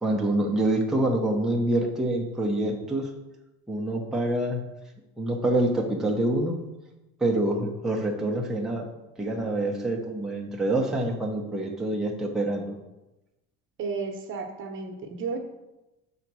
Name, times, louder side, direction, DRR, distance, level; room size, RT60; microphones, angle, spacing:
voice 1, 0.0-3.1 3.7-4.6 5.2-6.6 7.2-8.9 9.2-12.8, right 1 dB, ahead, -1 dB, 0.8 m, -26 dB
voice 2, 13.8-15.4, right 4 dB, 40° right, 4 dB, 1.1 m, -33 dB
6.6 x 4.1 x 6.1 m, 1.0 s
cardioid pair, 130°, 30 cm